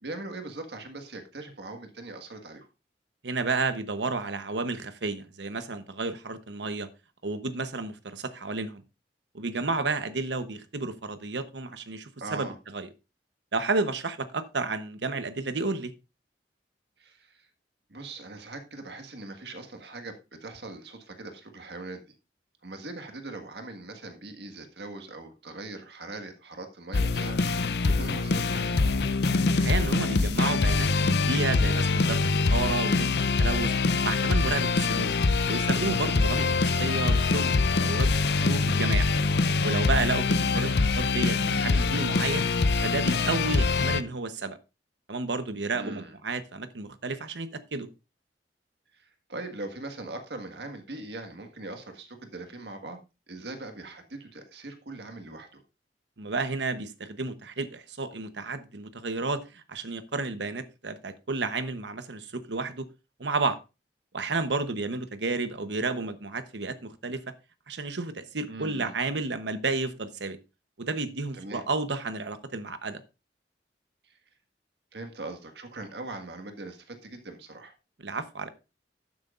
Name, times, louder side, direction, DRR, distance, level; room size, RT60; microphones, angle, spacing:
voice 1, 0.0-2.7 12.2-12.5 17.0-17.5 17.9-22.0 22.6-27.4 27.8-28.8 40.5-40.8 45.7-46.1 48.9-53.0 53.3-55.6 68.5-68.9 71.3-71.6 74.0-74.2 74.9-77.7, right 2 dB, 70° right, 1.7 m, -41 dB
voice 2, 3.2-6.9 7.2-8.8 9.3-12.9 13.5-15.9 29.5-33.7 34.0-35.1 35.5-39.1 39.6-40.7 40.9-42.5 42.8-44.6 45.1-47.9 56.2-62.8 63.2-63.6 64.1-67.2 67.7-70.4 70.8-73.0 78.0-78.5, right 3 dB, 85° right, 1.0 m, -31 dB
sound 1, 26.9-44.0, left 3 dB, 65° left, 0.6 m, -24 dB
12.5 x 9.4 x 2.5 m
head